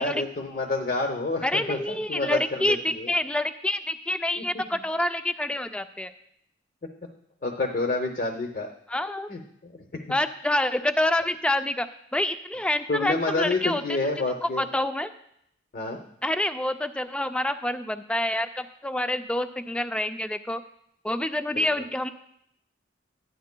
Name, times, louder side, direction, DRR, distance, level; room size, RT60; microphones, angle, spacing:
voice 1, 0.0-3.1 4.4-4.6 7.4-8.7 9.3-10.0 12.9-14.6 15.7-16.0 21.5-21.7, left 2 dB, 45° left, 3 dB, 0.7 m, -29 dB
voice 2, 1.4-6.1 8.9-9.3 10.1-11.9 12.1-13.8 14.4-15.1 16.2-20.6 21.0-22.1, left 1 dB, 5° left, 10 dB, 0.3 m, -27 dB
12.5 x 9.4 x 2.2 m, 0.74 s
head